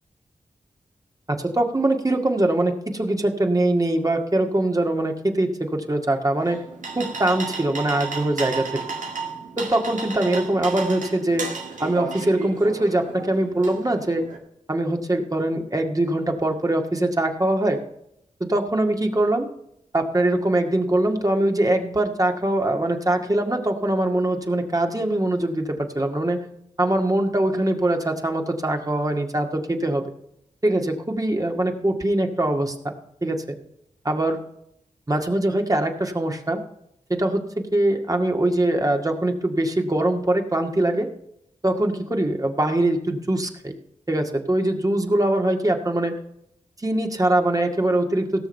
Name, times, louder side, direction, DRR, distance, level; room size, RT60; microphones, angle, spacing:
voice 1, 1.3-6.6 7.0-8.8 9.6-11.5 11.8-14.3 14.7-17.8 18.4-19.5 19.9-26.4 26.8-30.1 30.6-32.8 33.2-33.4 34.0-34.4 35.1-36.6 37.1-41.1 41.6-43.7 44.1-46.2 46.8-48.5, right 1 dB, 30° right, 3 dB, 1.9 m, -22 dB
sound 1, 6.4-14.4, right 4 dB, 80° right, 2.1 m, -33 dB
17.0 x 6.5 x 5.4 m, 0.77 s
cardioid pair, 50°, 13 cm